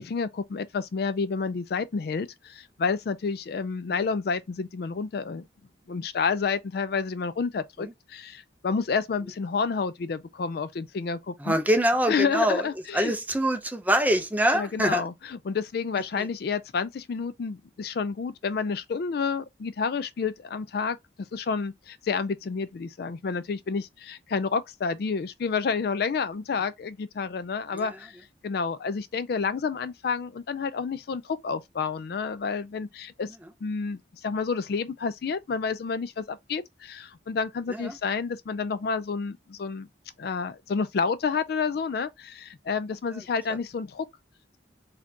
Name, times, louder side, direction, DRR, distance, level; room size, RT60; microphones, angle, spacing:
voice 1, 0.0-5.5 5.9-11.6 12.1-13.1 14.5-28.2 28.4-33.3 33.6-39.9 40.2-44.1, left 5 dB, 60° left, 0.4 m, -30 dB
voice 2, 11.4-12.7 12.9-15.0 27.7-27.9 37.7-37.9, right 1 dB, 10° right, 0.6 m, -24 dB
4.2 x 2.7 x 2.8 m
head